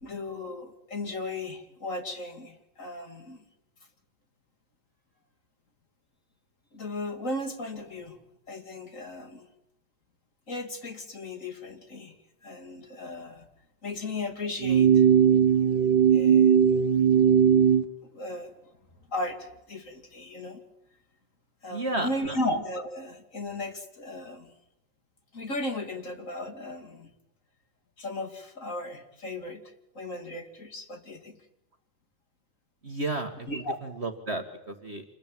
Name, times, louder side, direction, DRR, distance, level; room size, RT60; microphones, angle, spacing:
voice 1, 0.0-3.4 6.7-8.2 8.5-9.5 10.5-12.1 12.4-13.5 13.8-15.1 16.1-16.7 18.0-18.5 19.1-20.6 21.6-24.5 25.3-27.1 28.0-29.6 29.9-31.4 33.5-33.8, left 2 dB, 45° left, 5 dB, 3.2 m, -36 dB
sound 1, 14.6-17.8, right 8 dB, 75° right, 1.8 m, -19 dB
voice 2, 21.7-22.4 32.8-35.0, right 2 dB, 35° right, 5 dB, 1.9 m, -33 dB
27.0 x 20.5 x 9.2 m, 0.87 s
omnidirectional pair, 2.0 m